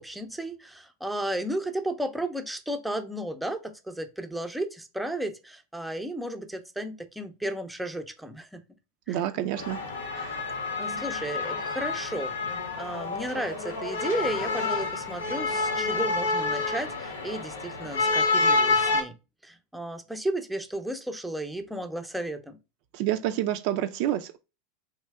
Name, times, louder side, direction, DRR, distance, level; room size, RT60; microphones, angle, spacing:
voice 1, 0.0-8.6 9.1-9.2 10.5-12.3 12.8-19.1 19.4-22.6, right 1 dB, 5° right, 0.5 m, -33 dB
voice 2, 9.1-9.8 10.1-10.4 22.9-24.4, right 12 dB, 50° right, 0.4 m, -28 dB
sound 1, 9.6-19.0, left 3 dB, 75° left, 0.7 m, -28 dB
3.1 x 2.8 x 3.4 m
figure-of-eight pair, 85°, 0 cm